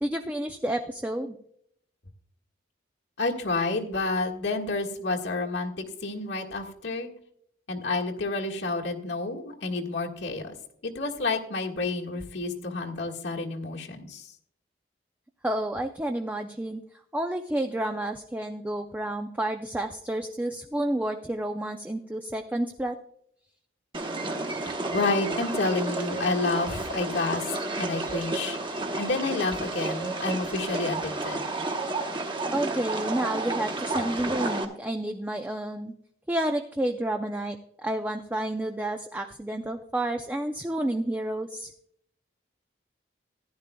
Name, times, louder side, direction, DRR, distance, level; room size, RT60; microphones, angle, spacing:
voice 1, 0.0-1.4 15.4-16.8 17.1-23.0 32.5-35.9 36.3-41.7, right 1 dB, 10° right, 5 dB, 0.4 m, -30 dB
voice 2, 3.2-7.1 7.7-10.5 10.8-14.3 24.6-27.5 27.8-28.6 29.0-31.4, left 3 dB, 90° left, -1 dB, 1.6 m, -29 dB
sound 1, 23.9-34.7, right 2 dB, 25° right, 0.9 m, -31 dB
15.0 x 11.0 x 2.3 m, 0.70 s
head